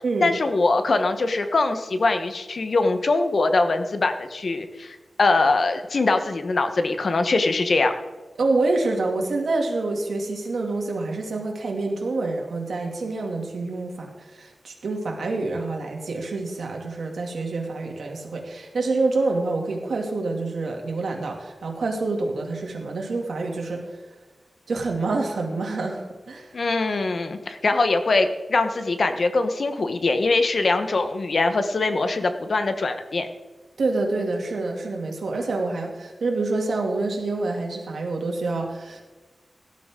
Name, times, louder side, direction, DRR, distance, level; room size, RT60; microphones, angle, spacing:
voice 1, 0.2-7.9 26.5-33.3, left 3 dB, 55° left, 8 dB, 1.1 m, -22 dB
voice 2, 8.4-24.0 24.7-26.5 33.8-39.0, right 3 dB, 85° right, 1 dB, 2.5 m, -27 dB
17.5 x 11.5 x 3.8 m, 1.2 s
wide cardioid pair, 120°, 0 cm